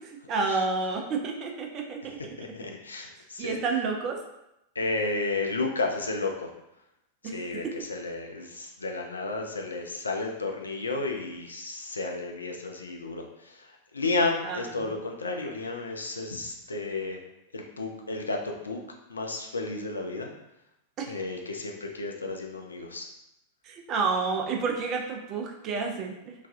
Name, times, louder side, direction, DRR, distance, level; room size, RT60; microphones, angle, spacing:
voice 1, 0.0-2.2 3.4-4.2 7.2-7.8 14.4-14.9 21.0-21.1 23.6-26.3, right 4 dB, 35° right, 2 dB, 0.5 m, -30 dB
voice 2, 2.4-3.6 4.8-6.5 7.2-17.2 17.5-18.8 19.1-20.3 21.1-23.1, left 3 dB, 75° left, 2 dB, 0.4 m, -32 dB
3.2 x 2.2 x 2.5 m, 0.86 s
figure-of-eight pair, 90°, 0 cm